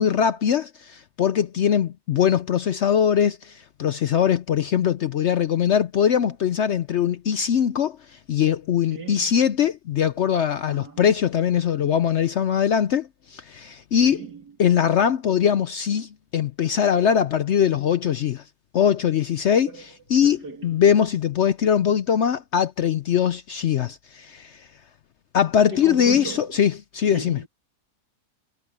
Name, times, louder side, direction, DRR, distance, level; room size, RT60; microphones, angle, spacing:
voice 1, 0.0-14.2 14.6-18.4 18.7-19.7 20.1-24.7 25.3-27.4, left 8 dB, 65° left, 0.7 m, -21 dB
voice 2, 8.9-9.3 10.7-11.0 14.0-14.6 19.7-19.8 20.2-20.7 25.7-26.6 27.1-27.5, right 4 dB, 90° right, 3.2 m, -37 dB
omnidirectional pair, 1.7 m